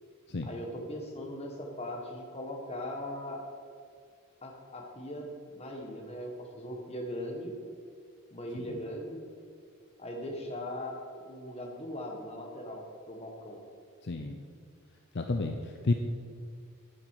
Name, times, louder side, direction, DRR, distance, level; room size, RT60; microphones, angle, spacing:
voice 1, 0.4-3.4 4.4-7.5 8.3-9.2 10.0-13.6, left 1 dB, 30° left, 1 dB, 1.6 m, -39 dB
voice 2, 14.0-14.4 15.1-15.9, left 3 dB, 55° left, 4 dB, 0.6 m, -31 dB
11.0 x 9.4 x 4.8 m, 2.1 s
head